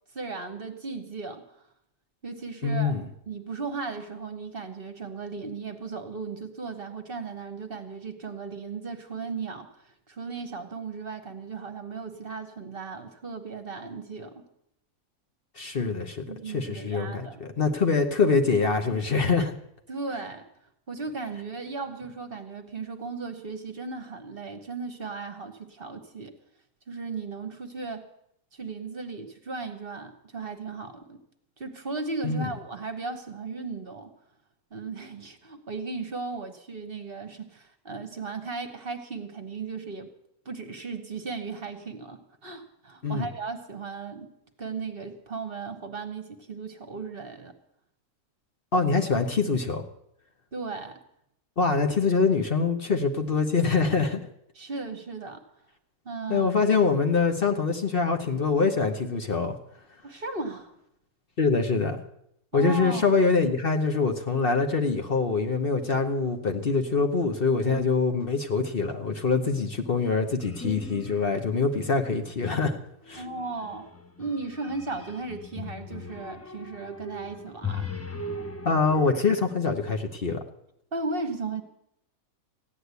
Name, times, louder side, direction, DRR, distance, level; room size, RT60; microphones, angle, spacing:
voice 1, 0.1-1.4 2.2-3.0 3.3-9.7 10.1-14.4 16.3-17.5 19.9-20.4 20.9-26.3 26.9-28.1 28.5-31.2 31.6-34.1 34.7-40.1 40.4-47.5 50.5-50.9 54.6-55.4 56.0-56.5 60.0-60.7 62.5-63.1 67.6-67.9 73.2-73.9 74.2-77.9 80.9-81.6, right 4 dB, 40° right, 7 dB, 1.2 m, -36 dB
voice 2, 2.6-3.1 15.6-19.5 32.2-32.5 43.0-43.3 48.7-49.8 51.6-54.2 56.3-59.6 61.4-62.0 62.5-72.8 73.1-73.2 78.6-80.4, left 4 dB, 45° left, 5 dB, 1.1 m, -24 dB
sound 1, 70.4-71.4 71.8-72.3 73.1-79.1, left 3 dB, 25° left, 0.3 m, -39 dB
15.0 x 9.9 x 8.1 m, 0.76 s
omnidirectional pair, 1.5 m